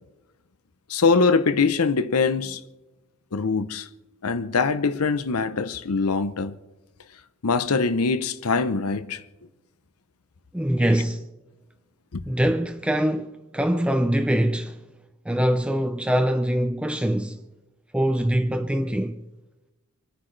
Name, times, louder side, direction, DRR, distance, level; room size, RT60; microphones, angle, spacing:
voice 1, 0.9-2.6 3.3-3.9 4.2-6.5 7.4-9.2 12.1-12.2, left 4 dB, 90° left, 0.8 m, -23 dB
voice 2, 10.5-11.3 12.3-14.8 15.3-17.4 17.9-19.2, right 1 dB, 5° right, 0.4 m, -23 dB
27.0 x 9.8 x 3.3 m
head